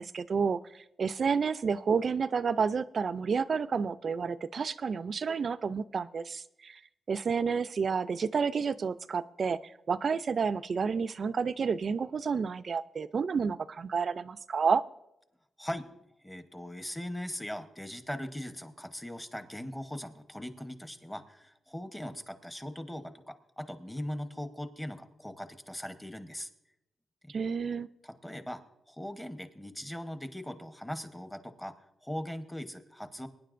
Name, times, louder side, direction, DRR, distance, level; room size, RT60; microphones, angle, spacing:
voice 1, 0.0-6.8 7.1-14.8 27.3-27.9, right 5 dB, 50° right, 14 dB, 0.4 m, -30 dB
voice 2, 16.2-26.5 27.2-27.3 28.0-28.6 28.9-31.7 32.0-33.3, equal, 10° left, 9 dB, 1.0 m, -40 dB
23.0 x 9.8 x 2.5 m, 0.86 s
cardioid pair, 95°, 0 cm